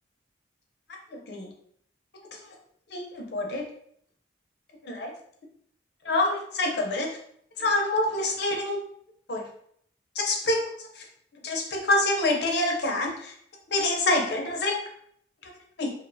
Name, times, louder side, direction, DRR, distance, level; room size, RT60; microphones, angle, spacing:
voice 1, 1.1-1.5 2.9-3.6 4.8-5.1 6.0-7.1 7.6-8.8 9.3-9.4 10.2-11.0 11.4-13.3 13.7-14.8 15.8-15.9, left 2 dB, 55° left, 1 dB, 0.5 m, -26 dB
2.4 x 2.1 x 2.6 m, 0.65 s
head